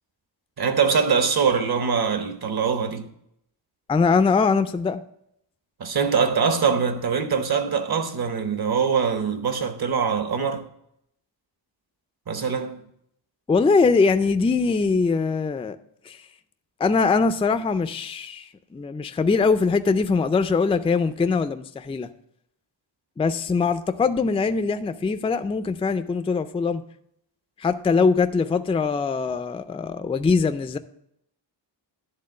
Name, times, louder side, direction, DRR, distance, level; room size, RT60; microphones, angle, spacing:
voice 1, 0.6-3.1 5.8-10.7 12.3-12.8, right 6 dB, 55° right, 1.0 m, -23 dB
voice 2, 3.9-5.0 13.5-15.8 16.1-16.2 16.8-22.1 23.2-26.8 27.6-30.8, left 4 dB, 15° left, 0.3 m, -22 dB
11.0 x 3.7 x 6.4 m
wide cardioid pair, 140°, 44 cm